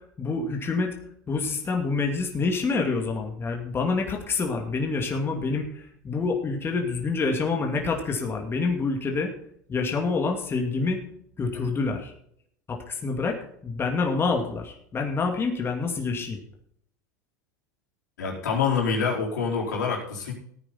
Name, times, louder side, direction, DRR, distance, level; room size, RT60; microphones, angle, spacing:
voice 1, 0.2-0.9 1.3-9.3 9.7-11.0 11.4-12.1 12.7-13.4 13.6-16.4, left 4 dB, 25° left, 2 dB, 2.5 m, -27 dB
voice 2, 18.2-20.3, left 5 dB, 85° left, -2 dB, 4.6 m, -26 dB
15.5 x 9.2 x 4.3 m, 0.67 s
hypercardioid pair, 100°, 9 cm